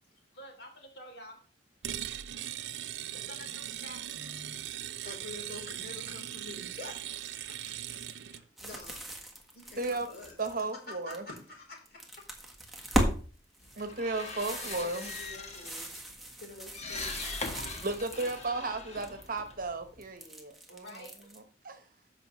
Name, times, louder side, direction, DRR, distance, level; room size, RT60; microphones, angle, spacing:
voice 1, 0.3-1.4 3.1-4.0 20.7-21.3, left 1 dB, 75° left, 1 dB, 3.2 m, -49 dB
sound 1, 1.8-8.4, right 11 dB, 75° right, 0.5 m, -39 dB
voice 2, 4.1-4.6 5.0-9.0 9.5-10.3 10.9-12.3 14.6-15.9 16.4-17.7, left 2 dB, 60° left, -1 dB, 3.9 m, -48 dB
sound 2, 8.6-11.4 11.8-13.2 13.5-18.5 18.8-19.4 20.0-21.4, right 1 dB, ahead, 1.4 m, -37 dB
voice 3, 10.4-11.2 13.8-15.1 17.8-20.8 21.6-21.8, right 3 dB, 50° right, 8 dB, 1.2 m, -34 dB
Creaking Door, 13.6-20.1, left 3 dB, 40° left, 1.3 m, -42 dB
14.0 x 5.7 x 3.2 m, 0.38 s
head